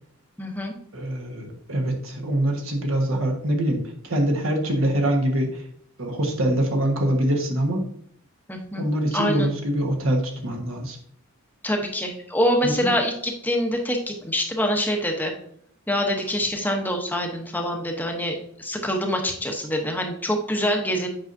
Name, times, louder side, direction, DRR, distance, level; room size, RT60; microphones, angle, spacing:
voice 1, 0.4-0.8 8.5-8.9 9.1-9.5 11.6-15.3 15.9-21.1, equal, 10° left, 2 dB, 0.8 m, -25 dB
voice 2, 0.9-5.6 6.0-7.8 8.8-11.0 12.6-12.9, right 1 dB, 65° right, 2 dB, 1.3 m, -24 dB
8.4 x 5.5 x 2.6 m, 0.65 s
head